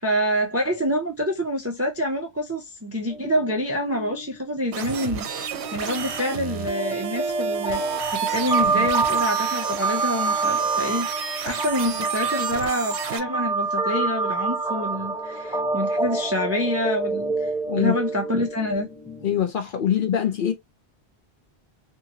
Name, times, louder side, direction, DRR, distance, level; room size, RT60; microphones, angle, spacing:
voice 1, 0.0-11.1 11.5-17.5 17.8-18.9, equal, 20° right, 0.4 m, -27 dB
sound 1, 3.1-4.3 4.6-4.8 5.0-19.4, right 4 dB, 5° right, 0.8 m, -27 dB
sound 2, 4.7-13.2, right 8 dB, 80° right, 0.9 m, -32 dB
voice 2, 19.2-20.5, left 9 dB, 60° left, 0.6 m, -23 dB
2.8 x 2.7 x 2.6 m
omnidirectional pair, 1.1 m